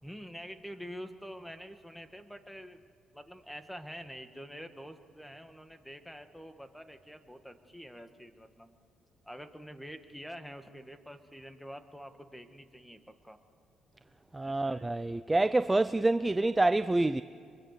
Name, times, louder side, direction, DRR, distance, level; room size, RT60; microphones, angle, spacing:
voice 1, 0.0-2.8 3.1-8.7 9.2-13.4 14.4-14.9, equal, 5° left, 1.7 m, -46 dB
voice 2, 14.3-17.2, right 2 dB, 15° right, 0.5 m, -27 dB
25.5 x 23.0 x 6.7 m
cardioid pair, 90°, 0 cm